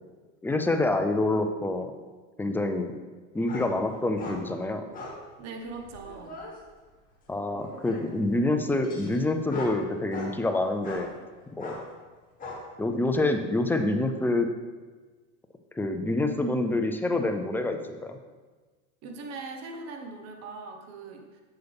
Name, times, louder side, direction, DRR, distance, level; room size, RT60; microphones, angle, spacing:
voice 1, 0.4-1.9 2.4-3.0 3.3-4.8 7.3-11.1 11.6-11.8 12.8-14.5 15.7-18.2, left 2 dB, 5° left, 6 dB, 0.4 m, -27 dB
sound 1, 3.5-3.7 4.2-4.4 4.9-5.2 5.7-6.5 7.5-8.1 8.8-10.3 10.8-11.1 11.6-11.8 12.4-12.6, left 3 dB, 25° left, 2.0 m, -39 dB
voice 2, 5.4-6.4 19.0-21.4, right 3 dB, 45° right, 3 dB, 1.2 m, -40 dB
7.8 x 7.0 x 3.5 m, 1.3 s
supercardioid pair, 125°, 36 cm